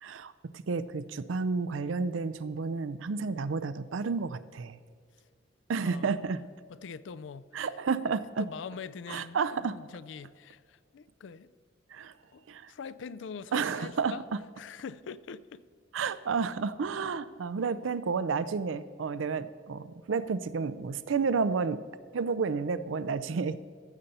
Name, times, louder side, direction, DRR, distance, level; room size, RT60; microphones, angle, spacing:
voice 1, 0.0-4.8 5.7-6.4 7.5-8.5 9.1-9.8 11.9-12.1 12.5-12.7 13.5-14.2 15.9-21.8 22.1-23.6, right 5 dB, 85° right, 0.5 m, -31 dB
voice 2, 5.8-6.4 6.7-7.6 8.4-11.5 12.3-14.2 14.6-15.6, left 6 dB, 70° left, 0.4 m, -43 dB
15.0 x 6.7 x 4.2 m
head